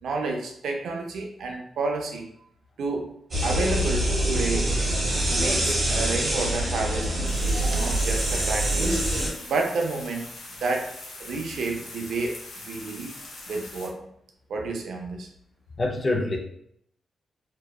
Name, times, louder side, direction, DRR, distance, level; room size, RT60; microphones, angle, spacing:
voice 1, 0.0-2.3 2.8-3.1 3.4-4.8 5.3-9.0 9.5-10.2 10.6-10.9 11.2-13.1 13.5-14.1 14.5-15.3, right 3 dB, 80° right, 2 dB, 0.4 m, -30 dB
sound 1, 3.3-9.3, right 1 dB, 30° right, 1.1 m, -25 dB
sound 2, 7.3-13.9, left 2 dB, 80° left, 0.6 m, -42 dB
voice 2, 15.8-16.4, left 2 dB, 25° left, 0 dB, 0.4 m, -26 dB
2.7 x 2.1 x 2.2 m, 0.70 s
wide cardioid pair, 155°, 0 cm